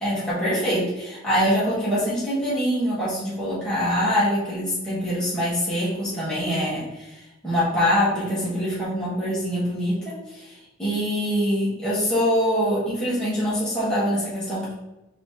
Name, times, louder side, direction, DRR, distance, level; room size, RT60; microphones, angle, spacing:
voice 1, 0.0-10.5 10.8-14.7, equal, 5° left, -11 dB, 1.5 m, -24 dB
4.0 x 2.9 x 3.7 m, 1.0 s
head